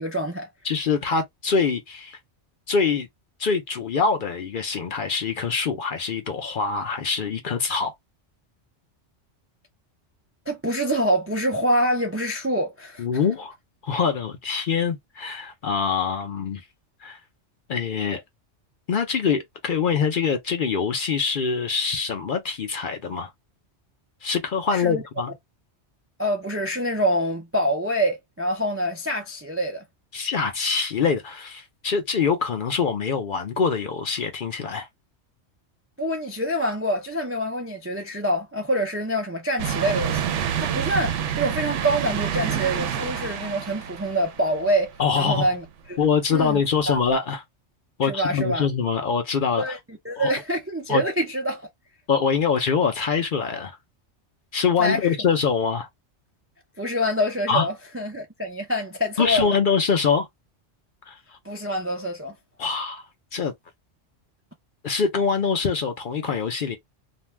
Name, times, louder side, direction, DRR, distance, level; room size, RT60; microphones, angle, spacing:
voice 1, 0.0-0.5 10.5-13.0 24.7-25.0 26.2-29.8 36.0-40.2 40.6-46.1 46.3-46.6 46.9-47.0 48.0-48.7 49.6-49.8 50.0-51.7 54.8-55.2 56.8-59.5 61.4-62.4, equal, 25° right, 0.3 m, -26 dB
voice 2, 0.6-2.2 2.7-3.1 3.4-7.9 13.0-13.6 13.8-16.6 17.0-17.2 17.7-18.2 18.9-23.3 24.2-25.3 30.1-34.9 45.0-45.5 46.0-47.4 48.0-49.6 50.2-50.3 50.9-51.0 52.1-53.8 54.5-55.9 57.5-57.7 59.2-60.3 61.1-61.4 62.6-63.0 63.3-63.5 64.8-66.8, left 5 dB, 55° left, 0.7 m, -24 dB
sound 1, 39.6-45.2 45.7-45.8 47.1-47.2, right 8 dB, 80° right, 0.9 m, -28 dB
2.6 x 2.2 x 3.1 m
omnidirectional pair, 1.2 m